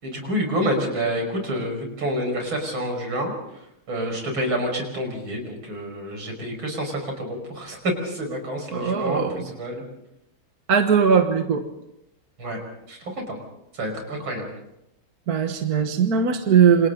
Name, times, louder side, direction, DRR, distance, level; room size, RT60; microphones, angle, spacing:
voice 1, 0.0-3.6 3.9-9.8 12.4-12.6 12.9-13.4 13.7-14.5, equal, 65° right, 3 dB, 6.2 m, -28 dB
voice 2, 8.7-9.4 10.7-11.6 15.3-16.9, right 6 dB, 45° right, 5 dB, 1.7 m, -19 dB
28.5 x 26.5 x 3.9 m, 0.83 s
omnidirectional pair, 2.4 m